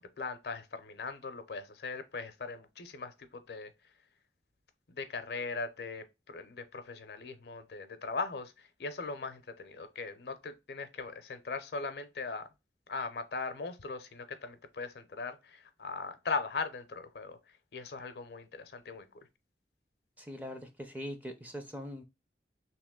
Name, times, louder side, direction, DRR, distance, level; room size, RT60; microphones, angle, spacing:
voice 1, 0.2-3.7 4.9-12.5 12.9-19.3, left 4 dB, 65° left, 0.5 m, -39 dB
voice 2, 20.2-22.0, equal, 10° right, 0.4 m, -42 dB
3.0 x 2.9 x 3.6 m
head